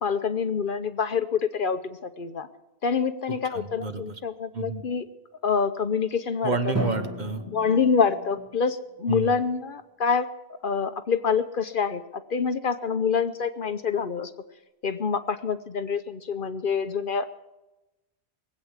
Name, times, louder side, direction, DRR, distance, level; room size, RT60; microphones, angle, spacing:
voice 1, 0.0-2.5 2.8-5.1 5.4-6.7 7.5-10.3 10.6-12.0 12.3-14.3 14.8-17.3, left 6 dB, 55° left, 10 dB, 0.9 m, -26 dB
voice 2, 3.3-4.1 4.5-4.8 6.4-7.4 9.1-9.3, right 4 dB, 45° right, 9 dB, 1.1 m, -30 dB
Drum, 6.7-8.7, right 1 dB, 15° right, 1.9 m, -34 dB
20.0 x 8.3 x 8.1 m, 0.98 s
omnidirectional pair, 1.1 m